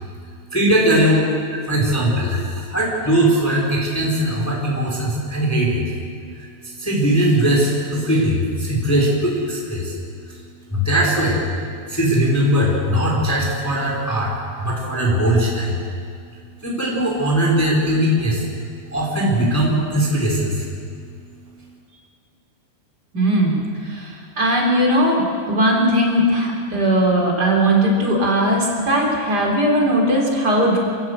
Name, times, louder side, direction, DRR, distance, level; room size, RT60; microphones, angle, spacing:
voice 1, 0.5-1.2 1.7-5.9 6.3-10.0 10.3-10.4 10.7-11.5 11.9-15.8 16.6-18.5 18.9-20.7, right 1 dB, 5° left, -3 dB, 3.4 m, -20 dB
voice 2, 23.1-30.8, right 1 dB, 25° right, 0 dB, 3.2 m, -18 dB
25.5 x 14.5 x 8.0 m, 2.3 s
omnidirectional pair, 5.2 m